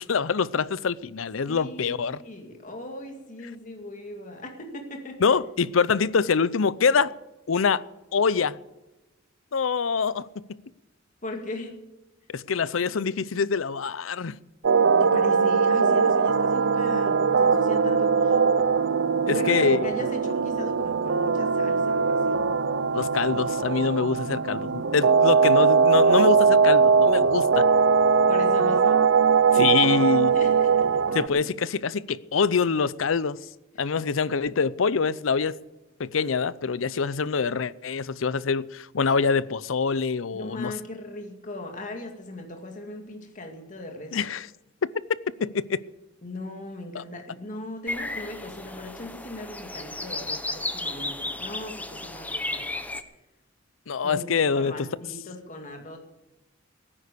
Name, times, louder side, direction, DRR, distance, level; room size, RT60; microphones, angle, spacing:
voice 1, 0.0-2.2 5.2-7.1 7.5-7.8 8.1-8.6 9.5-10.6 12.3-14.4 19.3-19.9 22.9-27.7 29.5-30.3 31.1-33.4 33.8-35.6 36.0-40.7 44.1-44.5 45.4-45.8 46.9-47.0 53.9-54.9, left 5 dB, 85° left, 0.6 m, -25 dB
voice 2, 1.5-5.2 11.2-11.8 15.0-18.4 19.3-22.4 28.3-29.0 30.3-31.2 40.3-44.2 46.2-52.6 54.0-54.2 54.5-56.0, left 1 dB, 40° left, 2.2 m, -38 dB
sound 1, 14.6-31.3, right 5 dB, 65° right, 0.6 m, -21 dB
sound 2, 47.9-53.0, left 2 dB, 10° left, 0.9 m, -34 dB
17.5 x 9.9 x 6.8 m
head